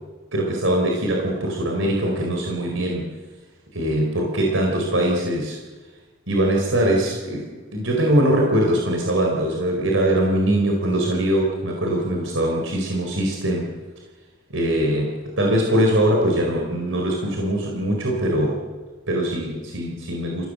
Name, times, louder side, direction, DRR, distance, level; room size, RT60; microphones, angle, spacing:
voice 1, 0.3-3.1 3.7-5.6 6.3-13.7 14.5-18.6 19.1-20.5, right 1 dB, 75° right, 0 dB, 4.4 m, -22 dB
28.5 x 17.0 x 7.9 m, 1.3 s
head